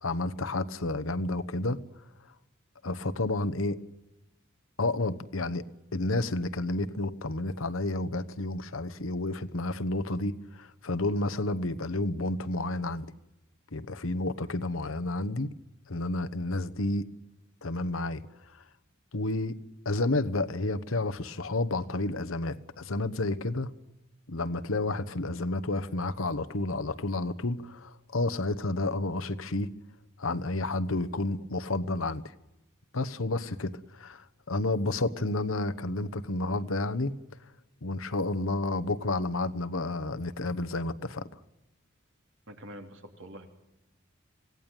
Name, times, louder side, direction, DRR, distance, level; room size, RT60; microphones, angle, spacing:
voice 1, 0.0-1.8 2.8-3.8 4.8-5.6 5.9-13.1 13.7-15.5 15.9-17.1 17.6-18.2 18.5-18.6 19.1-19.6 19.8-23.7 24.3-29.7 30.2-32.2 32.9-37.1 37.8-41.3, left 2 dB, 80° left, 1.2 m, -30 dB
voice 2, 42.5-43.5, equal, 65° right, 3.5 m, -45 dB
26.0 x 17.5 x 9.1 m
head